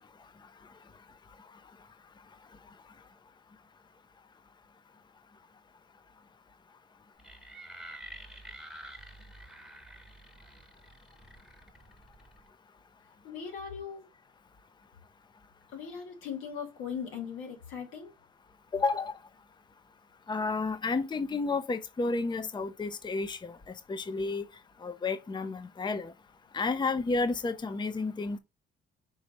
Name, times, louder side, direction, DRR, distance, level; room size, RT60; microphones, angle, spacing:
sound 1, 7.2-12.5, right 1 dB, ahead, 1.1 m, -49 dB
voice 1, 13.2-14.0 15.7-18.1, left 7 dB, 85° left, 2.4 m, -39 dB
voice 2, 18.7-19.2 20.3-24.5 24.8-26.1 26.5-28.4, left 3 dB, 20° left, 0.6 m, -31 dB
5.6 x 3.4 x 5.2 m
cardioid pair, 90°, 20 cm